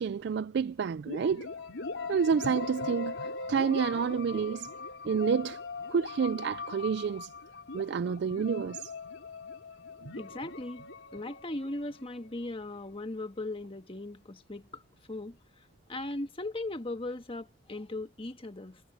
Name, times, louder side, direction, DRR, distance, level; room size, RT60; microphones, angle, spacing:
voice 1, 0.0-1.5 2.1-4.7 5.0-5.6 5.9-7.3 7.7-8.9, right 6 dB, 60° right, 0.3 m, -29 dB
sound 1, 1.1-12.8, left 3 dB, 90° left, 3.2 m, -40 dB
voice 2, 10.2-10.8 11.1-14.8 15.1-15.4 15.9-18.8, left 2 dB, 30° left, 1.6 m, -38 dB
head